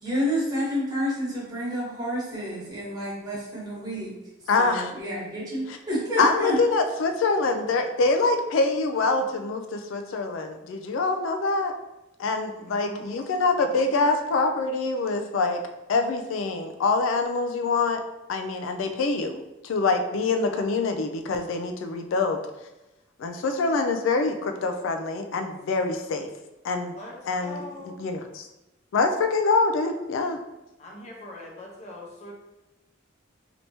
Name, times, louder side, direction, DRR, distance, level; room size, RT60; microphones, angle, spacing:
voice 1, 0.0-4.1 4.6-6.6, equal, 20° right, -7 dB, 1.2 m, -29 dB
voice 2, 4.5-4.9 5.7-5.8 6.2-11.7 12.2-15.6 15.9-18.0 18.3-19.4 19.6-22.4 23.2-26.3 26.6-26.9 27.3-27.6 28.0-28.5 28.9-30.4, left 3 dB, 80° left, 6 dB, 0.3 m, -25 dB
voice 3, 12.6-13.3 26.9-28.0 30.8-32.3, left 1 dB, 35° left, -2 dB, 0.6 m, -42 dB
3.3 x 2.9 x 2.7 m, 0.97 s
head